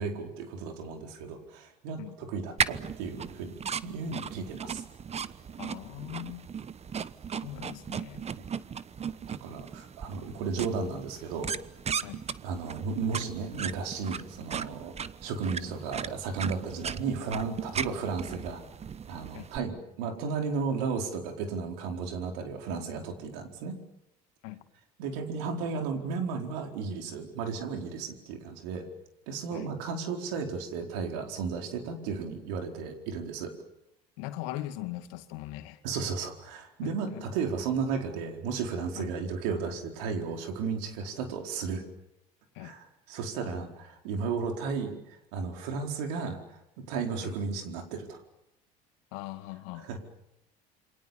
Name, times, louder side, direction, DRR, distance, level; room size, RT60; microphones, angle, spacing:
voice 1, 0.0-3.5 3.8-4.8 8.4-8.5 9.3-11.5 12.4-15.0 15.2-18.6 19.1-23.8 25.0-28.9 29.3-33.5 35.8-41.8 42.6-48.2 49.8-50.0, right 5 dB, 75° right, 3 dB, 4.6 m, -34 dB
sound 1, 2.6-19.6, right 7 dB, 30° right, 1.1 m, -37 dB
voice 2, 5.6-6.5 7.4-8.3 12.0-12.2 19.3-19.5 24.4-24.6 29.5-29.7 34.2-35.8 36.8-37.3 38.9-39.1 42.5-42.8 47.2-47.3 49.1-49.9, left 15 dB, 75° left, 8 dB, 2.2 m, -40 dB
28.0 x 25.0 x 7.3 m, 0.84 s
hypercardioid pair, 75°, 20 cm